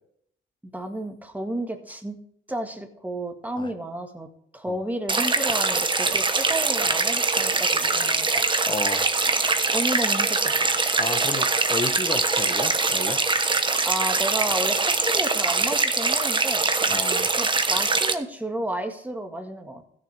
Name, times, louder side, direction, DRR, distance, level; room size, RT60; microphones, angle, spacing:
voice 1, 0.7-2.1 2.5-8.8 9.7-10.8 13.8-16.7 17.4-19.8, right 1 dB, 10° right, 4 dB, 1.7 m, -32 dB
sound 1, 5.1-18.1, right 3 dB, 25° right, 1.1 m, -23 dB
voice 2, 8.7-9.1 11.0-13.2 16.9-17.3, left 3 dB, 25° left, 10 dB, 1.0 m, -32 dB
15.5 x 6.8 x 3.4 m, 0.69 s
cardioid pair, 90°, 20 cm